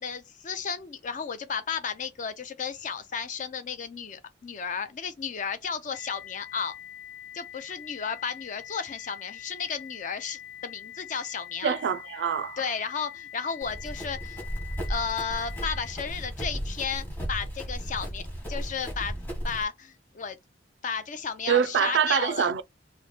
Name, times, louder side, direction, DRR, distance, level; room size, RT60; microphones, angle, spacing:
voice 1, 0.0-6.7 7.3-11.7 12.6-14.4 14.9-20.4 20.8-22.5, left 6 dB, 45° left, 0.5 m, -33 dB
sound 1, 5.9-15.9, left 11 dB, 80° left, 1.3 m, -44 dB
voice 2, 11.6-12.6 21.5-22.6, right 8 dB, 70° right, 0.3 m, -25 dB
Run, 13.6-19.6, equal, 10° left, 1.2 m, -35 dB
3.1 x 2.1 x 3.9 m
head